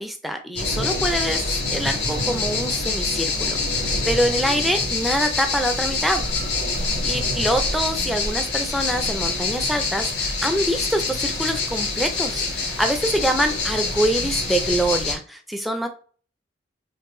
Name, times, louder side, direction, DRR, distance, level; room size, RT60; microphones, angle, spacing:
voice 1, 0.0-6.3 7.0-15.9, equal, ahead, 5 dB, 0.4 m, -25 dB
sound 1, 0.6-15.1, left 3 dB, 65° left, 1.8 m, -25 dB
4.7 x 3.0 x 2.6 m, 0.41 s
head